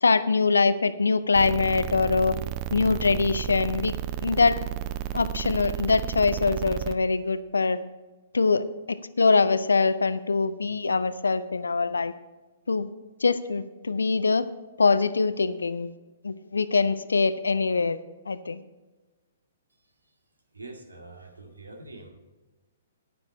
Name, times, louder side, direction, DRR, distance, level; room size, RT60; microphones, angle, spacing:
voice 1, 0.0-2.4 2.7-3.9 4.2-4.6 5.1-7.8 8.3-12.1 12.7-12.9 13.2-14.5 14.8-15.9 16.2-18.0 18.3-18.6, left 4 dB, 70° left, 15 dB, 0.6 m, -23 dB
sound 1, 1.3-6.9, right 12 dB, 30° right, 0.6 m, -32 dB
voice 2, 20.5-22.1, right 2 dB, 75° right, 2 dB, 2.0 m, -44 dB
10.5 x 9.7 x 4.2 m, 1.2 s
figure-of-eight pair, 115°, 0 cm